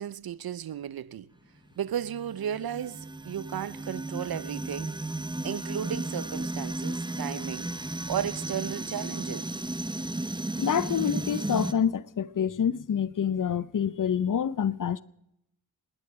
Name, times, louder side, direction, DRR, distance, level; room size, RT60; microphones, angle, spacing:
voice 1, 0.0-1.3 1.8-5.0 5.4-7.7 8.1-9.5, right 10 dB, 60° right, 0.7 m, -34 dB
sound 1, 1.9-11.7, right 2 dB, 10° right, 1.0 m, -34 dB
voice 2, 10.6-15.0, left 8 dB, 50° left, 0.8 m, -27 dB
28.0 x 10.5 x 4.9 m
cardioid pair, 45°, 41 cm